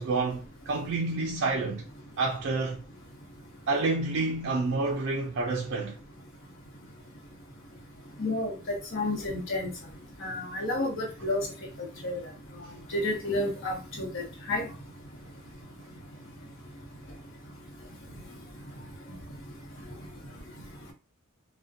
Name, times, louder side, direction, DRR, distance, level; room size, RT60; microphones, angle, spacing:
voice 1, 0.0-1.8 2.2-2.8 3.7-5.9, right 3 dB, 55° right, 0.3 m, -29 dB
voice 2, 8.2-9.7 10.2-11.5 12.0-12.2 12.9-14.7, left 1 dB, 55° left, 0.8 m, -30 dB
2.5 x 2.1 x 2.4 m
head